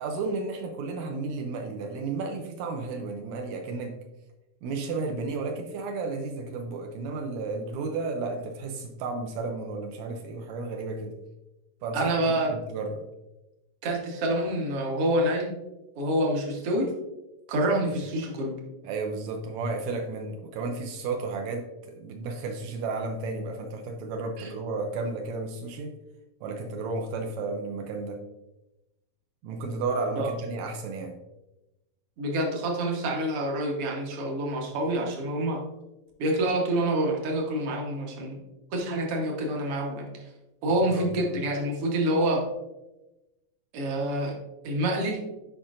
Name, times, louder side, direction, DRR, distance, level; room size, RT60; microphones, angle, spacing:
voice 1, 0.0-4.0 4.6-11.2 11.8-12.1 12.5-13.0 18.8-25.9 26.4-28.2 29.4-31.2 40.9-41.3, right 3 dB, 90° right, 3 dB, 1.5 m, -33 dB
voice 2, 11.9-12.5 13.8-15.6 16.0-16.9 17.5-18.6 24.4-24.5 30.2-30.3 32.2-35.6 36.2-38.4 38.7-40.1 40.6-42.4 43.7-44.4 44.6-45.2, right 1 dB, 60° right, 0 dB, 1.6 m, -27 dB
8.3 x 5.1 x 2.5 m, 1.0 s
omnidirectional pair, 3.8 m